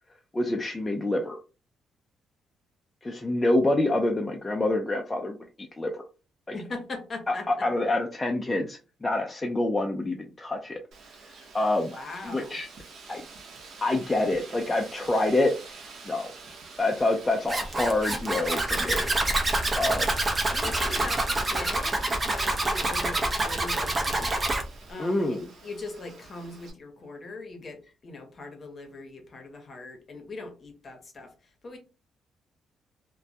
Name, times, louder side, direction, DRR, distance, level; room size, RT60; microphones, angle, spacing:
voice 1, 0.3-1.4 3.0-6.0 6.5-6.6 7.3-10.8 11.5-11.9 12.2-12.7 13.1-13.2 13.8-15.5 16.0-16.3 16.8-19.1 19.8-20.1 20.6-21.1 25.0-25.5, left 2 dB, 20° left, 1 dB, 0.4 m, -27 dB
voice 2, 6.5-7.5 11.9-12.6 20.5-24.4 24.9-31.3 31.6-31.8, left 3 dB, 40° left, 4 dB, 0.8 m, -40 dB
Wind, 10.9-26.7, right 4 dB, 65° right, 0.7 m, -47 dB
Zipper (clothing), 17.5-24.6, right 2 dB, 30° right, 0.6 m, -27 dB
2.2 x 2.1 x 2.7 m, 0.32 s
cardioid pair, 90°, 0 cm